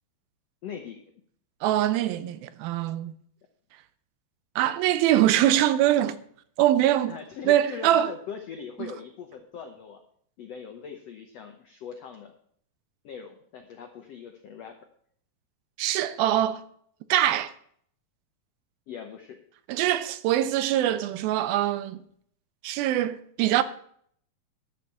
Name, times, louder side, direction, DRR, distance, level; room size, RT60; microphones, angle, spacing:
voice 1, 0.6-1.0 7.1-10.0 10.4-12.3 13.0-14.7 18.9-19.4, left 7 dB, 80° left, 1.4 m, -40 dB
voice 2, 1.6-3.1 4.6-6.2 6.6-7.1 7.5-8.1 8.8-8.9 15.8-16.6 17.1-17.5 19.7-22.0 22.6-23.6, right 12 dB, 80° right, 2.4 m, -23 dB
12.5 x 6.3 x 7.0 m
omnidirectional pair, 4.3 m